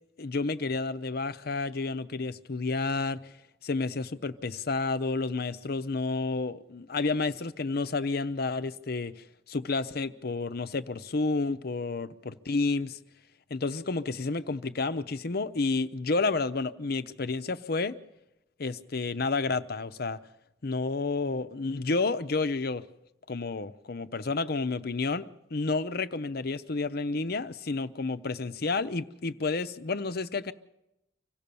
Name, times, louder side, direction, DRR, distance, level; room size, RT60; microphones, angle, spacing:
voice 1, 0.2-3.2 3.6-13.0 13.5-17.9 18.6-20.2 20.6-22.8 23.3-30.5, left 3 dB, 60° left, 0.7 m, -30 dB
25.5 x 16.0 x 6.9 m
head